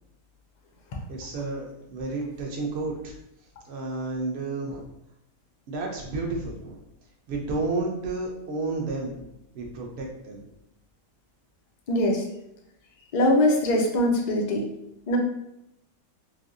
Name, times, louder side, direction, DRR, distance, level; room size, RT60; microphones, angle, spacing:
voice 1, 1.1-3.1 3.7-4.8 5.7-6.8 7.3-9.3 9.5-10.5, right 3 dB, 55° right, 0 dB, 0.8 m, -31 dB
voice 2, 11.9-12.2 13.1-14.7 15.1-15.2, left 1 dB, 75° left, 0 dB, 0.4 m, -22 dB
3.3 x 2.6 x 2.5 m, 0.81 s
omnidirectional pair, 1.5 m